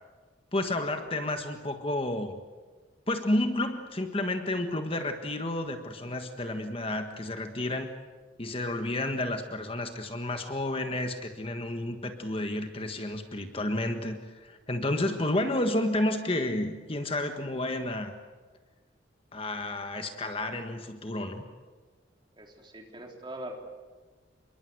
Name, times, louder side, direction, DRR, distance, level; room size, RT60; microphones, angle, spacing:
voice 1, 0.5-2.3 3.1-7.9 8.4-18.1 19.3-21.4, left 1 dB, 30° left, 6 dB, 1.5 m, -31 dB
voice 2, 22.4-23.5, right 1 dB, 25° right, 2 dB, 3.6 m, -42 dB
27.5 x 22.5 x 8.0 m, 1.4 s
head